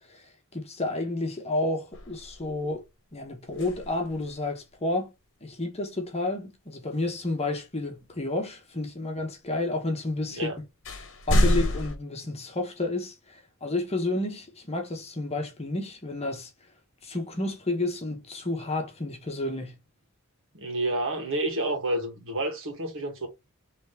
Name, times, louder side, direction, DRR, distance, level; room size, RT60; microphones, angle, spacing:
voice 1, 0.5-2.8 3.1-5.1 5.4-10.7 11.3-16.5 17.0-19.8, left 2 dB, 30° left, 1.1 m, -31 dB
sound 1, 1.9-2.7 3.5-4.4 7.9-8.0 10.1-10.2 10.8-12.0, left 1 dB, 60° left, 1.1 m, -27 dB
voice 2, 20.5-23.3, right 1 dB, 60° right, 1.9 m, -29 dB
4.1 x 3.4 x 3.4 m
head